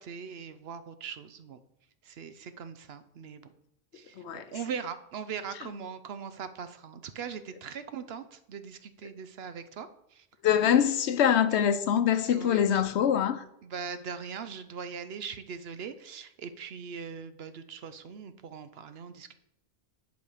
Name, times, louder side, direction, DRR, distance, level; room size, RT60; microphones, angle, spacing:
voice 1, 0.0-1.6 2.0-3.5 3.9-10.3 12.3-12.8 13.6-19.3, right 6 dB, 70° right, 0.9 m, -40 dB
voice 2, 10.4-13.4, left 9 dB, 85° left, 0.9 m, -24 dB
10.0 x 5.2 x 4.9 m
omnidirectional pair, 1.1 m